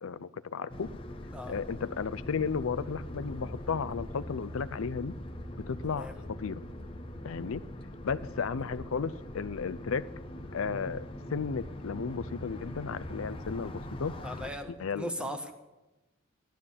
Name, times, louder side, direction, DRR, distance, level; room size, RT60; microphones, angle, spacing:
voice 1, 0.0-0.9 1.5-5.1 5.7-6.1 6.4-6.6 7.2-7.6 8.0-10.1 10.5-14.2 14.8-15.3, left 5 dB, 75° left, 15 dB, 0.5 m, -34 dB
sound 1, 0.7-14.5, left 1 dB, 25° left, 1.0 m, -42 dB
voice 2, 5.8-6.2 14.2-15.5, equal, 5° right, 5 dB, 1.4 m, -38 dB
14.5 x 11.5 x 7.2 m, 1.1 s
head